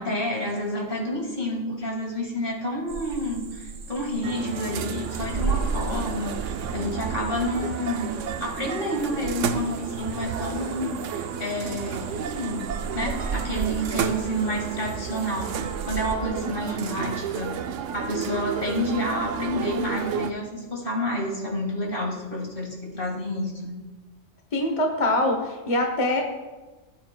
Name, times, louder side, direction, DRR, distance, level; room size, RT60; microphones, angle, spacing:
voice 1, 0.0-11.0 11.4-23.8, equal, 45° left, 0 dB, 2.1 m, -29 dB
sound 1, 2.9-16.1, right 4 dB, 50° right, 1.0 m, -36 dB
sound 2, 4.2-20.3, right 8 dB, 80° right, 0.9 m, -32 dB
voice 2, 24.5-26.2, left 1 dB, 30° left, 3 dB, 0.8 m, -23 dB
17.0 x 8.7 x 2.2 m, 1.2 s
omnidirectional pair, 1.3 m